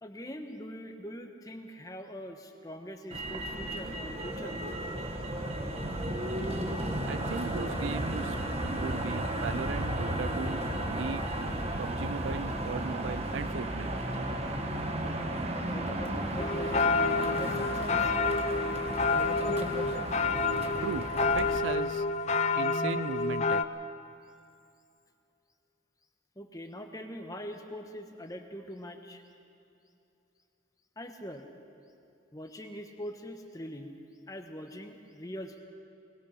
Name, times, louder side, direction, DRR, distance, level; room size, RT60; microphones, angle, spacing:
voice 1, 0.0-4.6 15.6-16.9 17.2-18.1 26.3-29.2 31.0-31.5 32.3-34.0 34.3-35.6, equal, 20° left, 5 dB, 1.3 m, -42 dB
Motor vehicle (road), 3.1-21.6, right 1 dB, 30° right, 1.3 m, -34 dB
voice 2, 7.1-8.4 8.7-11.3 11.8-13.9 20.8-22.1 22.6-23.6, right 5 dB, 80° right, 16 dB, 0.4 m, -37 dB
sound 1, 16.4-23.7, left 4 dB, 35° left, 0.5 m, -28 dB
22.0 x 20.5 x 5.9 m, 2.6 s
head